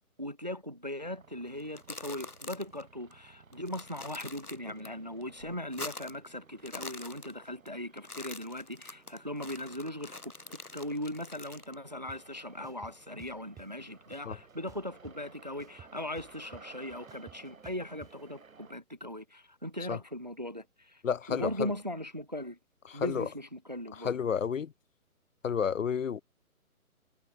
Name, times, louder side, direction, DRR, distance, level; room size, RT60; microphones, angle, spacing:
voice 1, 0.2-21.0 21.3-22.6 22.9-24.1, left 1 dB, 30° right, 0.4 m, -39 dB
sound 1, 1.0-18.7, right 5 dB, 60° right, 2.7 m, -58 dB
sound 2, 1.6-2.8 3.1-3.2 3.5-4.9 5.2-6.3 6.6-7.7 8.0-11.7, left 3 dB, 80° left, 2.6 m, -45 dB
sound 3, 12.1-12.2 12.6-13.7 14.1-15.3 15.6-18.1, right 9 dB, 10° right, 2.3 m, -53 dB
voice 2, 21.0-21.7 22.9-23.3 23.9-24.7 25.4-26.2, left 7 dB, 60° left, 0.6 m, -31 dB
figure-of-eight pair, 140°, 45 cm